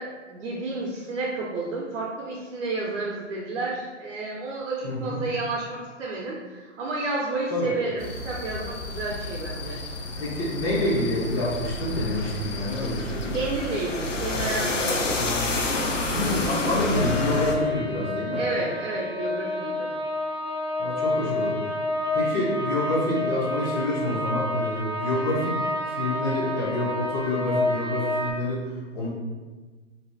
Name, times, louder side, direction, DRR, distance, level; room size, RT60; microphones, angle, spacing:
voice 1, 0.0-9.8 13.3-15.3 18.3-19.9, right 2 dB, 60° right, -4 dB, 0.6 m, -31 dB
voice 2, 4.8-5.2 7.5-7.7 10.2-13.4 16.1-18.4 20.8-21.7 22.1-25.6 25.9-29.1, left 1 dB, 25° left, -6 dB, 0.6 m, -27 dB
sound 1, 8.0-17.6, left 2 dB, 80° left, 0.6 m, -29 dB
sound 2, 16.9-28.3, left 1 dB, 25° right, 0.4 m, -29 dB
2.7 x 2.2 x 3.2 m, 1.3 s
figure-of-eight pair, 110°, 37 cm